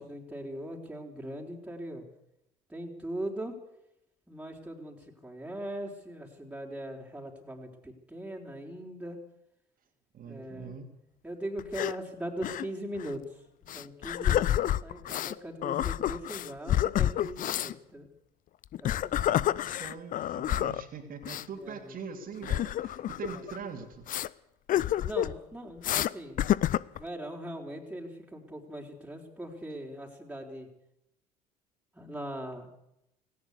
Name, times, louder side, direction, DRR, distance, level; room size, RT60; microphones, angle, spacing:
voice 1, 0.0-2.0 2.7-3.5 4.3-9.2 10.2-10.8 11.2-13.2 13.7-18.1 18.8-19.3 21.6-21.9 23.3-23.4 25.0-26.4 26.9-30.7 31.9-32.7, right 1 dB, 5° right, -1 dB, 4.4 m, -40 dB
voice 2, 10.1-10.9 19.2-24.0, right 6 dB, 45° right, 3 dB, 3.4 m, -42 dB
sound 1, 11.6-12.0 12.4-12.7 13.0-13.1 13.7-15.3 15.6-17.7 18.6-20.8 21.2-21.4 22.4-23.6 24.1-24.3 24.7-25.4 25.8-26.1 26.4-27.0, left 12 dB, 45° left, 0.7 m, -29 dB
18.0 x 18.0 x 8.4 m, 0.80 s
figure-of-eight pair, 55°, 20 cm